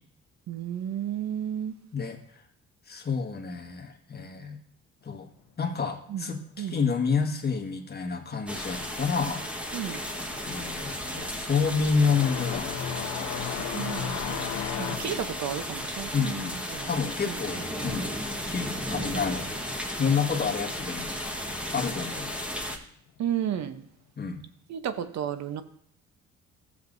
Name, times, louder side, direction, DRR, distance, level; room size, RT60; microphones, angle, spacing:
voice 1, 0.5-1.7 6.1-6.2 6.6-6.8 9.7-10.0 13.4-14.5 14.8-16.9 17.2-17.3 23.2-23.8 24.7-25.6, right 9 dB, 65° right, 10 dB, 0.9 m, -33 dB
voice 2, 2.9-4.6 5.0-5.3 5.6-9.4 10.5-12.8 14.9-15.3 16.1-16.6 16.8-18.1 18.5-19.5 20.0-21.2 21.7-22.3 24.2-24.4, left 5 dB, 35° left, 1 dB, 1.6 m, -29 dB
sound 1, 8.5-22.8, equal, 5° right, 1.3 m, -34 dB
sound 2, 9.7-9.8 10.1-18.4 18.7-19.7 20.7-20.8 21.6-21.7 23.5-23.6, left 9 dB, 85° left, 0.7 m, -36 dB
15.0 x 7.5 x 2.7 m, 0.67 s
cardioid pair, 90°, 30 cm